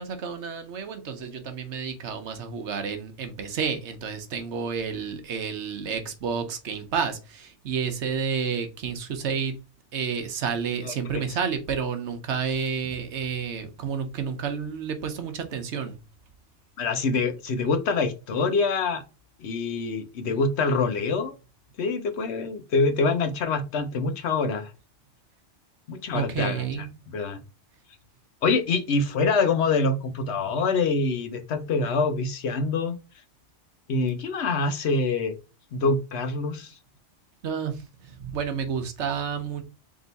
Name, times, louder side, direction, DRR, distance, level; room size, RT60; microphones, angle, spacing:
voice 1, 0.0-9.5 9.9-16.0 26.1-26.9 30.4-30.5 37.4-39.6, right 6 dB, 70° right, 1.1 m, -30 dB
voice 2, 10.8-11.2 16.8-19.0 19.4-21.3 21.8-24.7 25.9-26.6 27.1-27.4 28.4-33.0 33.9-35.4 35.7-36.7, left 4 dB, 70° left, 1.0 m, -25 dB
3.6 x 2.9 x 3.9 m
omnidirectional pair, 1.2 m